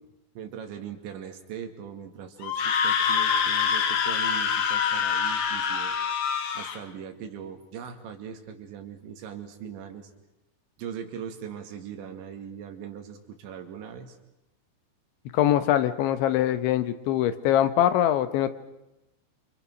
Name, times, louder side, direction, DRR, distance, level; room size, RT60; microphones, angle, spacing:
voice 1, 0.4-5.9 6.6-10.1 10.8-14.2, right 8 dB, 80° right, 5 dB, 4.5 m, -40 dB
Screaming, 2.4-6.8, left 7 dB, 65° left, 3.6 m, -25 dB
voice 2, 15.3-18.5, left 11 dB, 90° left, 11 dB, 3.6 m, -23 dB
28.5 x 27.0 x 6.3 m, 0.93 s
omnidirectional pair, 5.1 m